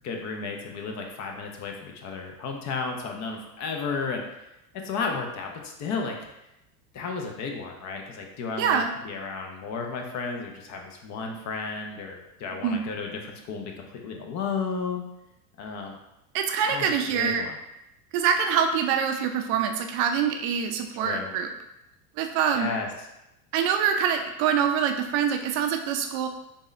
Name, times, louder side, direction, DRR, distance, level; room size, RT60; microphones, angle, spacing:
voice 1, 0.0-4.2 4.7-6.2 6.9-15.0 15.6-16.0 16.6-17.6 21.0-21.3 22.5-23.1, left 4 dB, 40° left, 2 dB, 0.7 m, -33 dB
voice 2, 8.6-8.9 12.6-12.8 16.3-17.4 18.1-21.5 22.2-22.7 23.5-26.3, right 7 dB, 50° right, 5 dB, 0.5 m, -25 dB
3.5 x 2.7 x 3.2 m, 0.87 s
hypercardioid pair, 95°, 43 cm